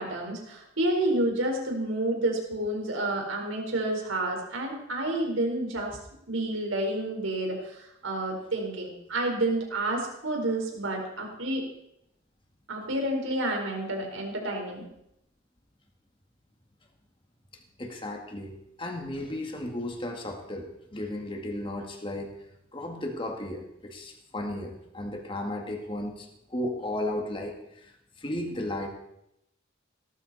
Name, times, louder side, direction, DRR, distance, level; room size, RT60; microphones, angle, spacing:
voice 1, 0.0-5.9 6.3-11.6 12.7-14.8, right 1 dB, 85° right, 1 dB, 4.5 m, -29 dB
voice 2, 17.8-22.4 22.7-28.9, left 1 dB, 25° left, 2 dB, 2.1 m, -35 dB
18.5 x 13.5 x 4.3 m, 0.79 s
head